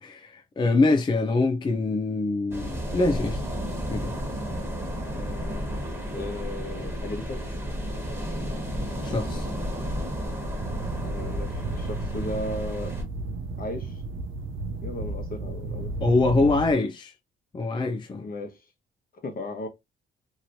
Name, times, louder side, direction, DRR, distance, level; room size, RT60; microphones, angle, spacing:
voice 1, 0.0-3.4 3.9-4.1 9.0-9.5 16.0-17.1 17.5-18.2, left 3 dB, 25° left, 0.4 m, -24 dB
sound 1, 2.5-13.0, equal, 10° right, 1.4 m, -32 dB
voice 2, 5.1-5.7 6.1-7.4 11.0-13.0 13.6-14.0 14.8-15.9 18.1-18.6 19.2-19.7, left 1 dB, 45° left, 1.1 m, -36 dB
sound 2, 10.6-16.7, right 3 dB, 80° right, 0.6 m, -33 dB
3.0 x 2.9 x 2.6 m
cardioid pair, 90°, 20 cm